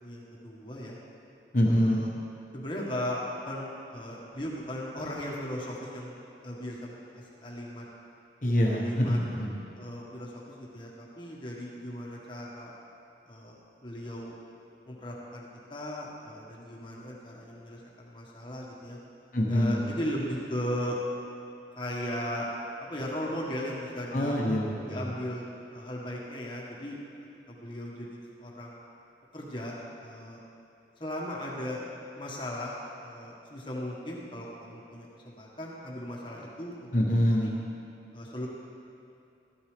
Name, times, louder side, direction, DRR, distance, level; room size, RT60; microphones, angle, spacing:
voice 1, 0.0-1.0 1.6-2.1 2.5-6.1 6.4-7.8 8.7-9.2 9.8-12.7 13.2-14.3 14.9-19.0 19.5-21.0 21.7-22.5 22.8-24.4 24.9-25.5 25.7-27.0 27.5-28.8 29.3-29.8 30.0-30.4 31.0-31.8 32.1-32.7 33.0-36.9 37.2-37.5 38.1-38.5, equal, 25° left, -4 dB, 1.6 m, -37 dB
voice 2, 1.5-2.0 8.4-9.5 19.3-19.8 24.1-25.1 36.9-37.5, equal, 45° left, -2 dB, 1.3 m, -25 dB
14.0 x 12.0 x 3.4 m, 2.7 s
head